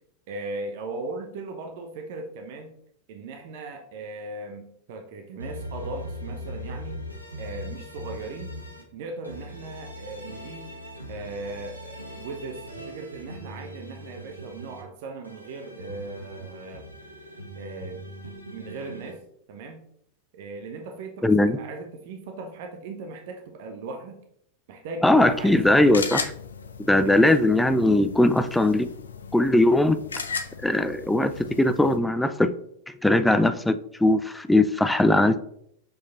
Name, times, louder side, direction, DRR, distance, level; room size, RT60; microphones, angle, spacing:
voice 1, 0.3-2.7 3.1-7.0 7.4-8.6 8.9-10.8 11.1-16.8 17.5-18.1 18.5-19.2 19.5-19.8 20.3-24.2 24.7-26.0 27.0-27.4, right 3 dB, 50° right, 5 dB, 0.9 m, -38 dB
sound 1, 5.4-8.8 9.2-14.8 15.2-19.1, equal, 90° right, 1.4 m, -40 dB
voice 2, 21.2-21.6 25.0-26.2 26.9-28.9 29.3-30.0 30.6-32.5 32.9-35.4, left 1 dB, 5° left, 11 dB, 0.5 m, -20 dB
sound 2, 25.2-32.0, left 5 dB, 70° left, 0.7 m, -37 dB
6.7 x 4.8 x 4.0 m, 0.71 s
figure-of-eight pair, 90°, 0 cm